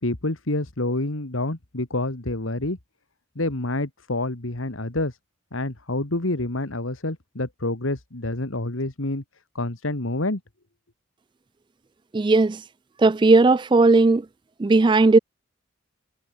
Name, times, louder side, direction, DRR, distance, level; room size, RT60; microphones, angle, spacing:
voice 1, 0.0-2.8 3.4-5.2 5.5-9.2 9.5-10.4, left 2 dB, 85° left, 2.3 m, -27 dB
voice 2, 12.1-12.6 13.0-14.3 14.6-15.2, right 3 dB, 25° right, 0.3 m, -16 dB
head